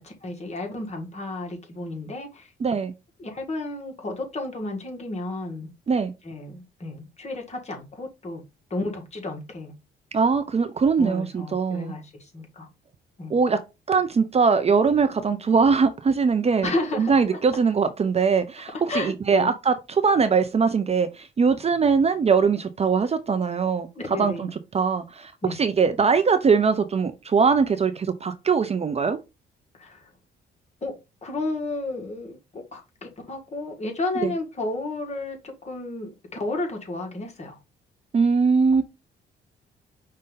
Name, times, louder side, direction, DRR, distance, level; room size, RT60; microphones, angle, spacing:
voice 1, 0.0-2.5 3.2-5.7 6.2-8.4 8.7-9.7 11.0-12.7 13.2-13.4 16.6-17.4 18.9-19.5 23.9-24.5 25.4-25.6 29.7-30.1 30.8-30.9 31.2-37.6, left 2 dB, 35° left, 1.6 m, -32 dB
voice 2, 2.6-2.9 5.9-6.1 10.1-11.9 13.3-13.6 13.9-16.7 17.0-23.9 24.2-29.2 34.2-34.3 38.1-38.8, right 5 dB, 30° right, 0.5 m, -21 dB
5.3 x 2.6 x 3.7 m
cardioid pair, 90°, 20 cm